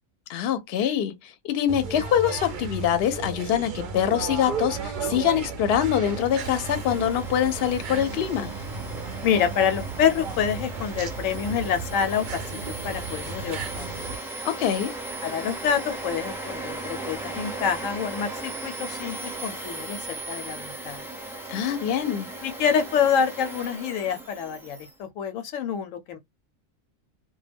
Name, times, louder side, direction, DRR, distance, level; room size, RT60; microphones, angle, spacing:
voice 1, 0.3-8.5 14.4-14.9 21.5-22.3, left 10 dB, 60° left, 0.7 m, -24 dB
sound 1, 1.7-14.2, right 5 dB, 60° right, 0.5 m, -34 dB
Domestic sounds home sounds, 6.1-24.9, right 2 dB, 5° right, 0.5 m, -37 dB
voice 2, 9.2-13.9 15.2-20.0 20.3-21.1 22.4-26.2, left 7 dB, 85° left, 1.0 m, -27 dB
2.2 x 2.1 x 3.3 m
omnidirectional pair, 1.3 m